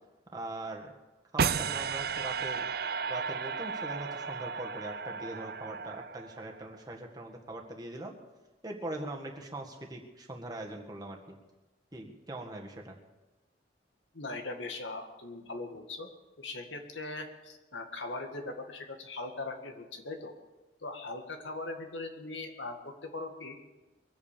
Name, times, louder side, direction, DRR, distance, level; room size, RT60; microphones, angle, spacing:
voice 1, 0.3-0.9 1.3-2.7 3.1-8.2 8.6-11.4 11.9-13.0, right 2 dB, 20° right, 1 dB, 1.8 m, -41 dB
sound 1, 1.4-6.6, right 6 dB, 55° right, 0.4 m, -34 dB
voice 2, 14.1-16.1 16.4-20.3 20.8-23.6, left 2 dB, 85° left, 4 dB, 2.0 m, -40 dB
22.5 x 8.5 x 6.9 m, 1.1 s
head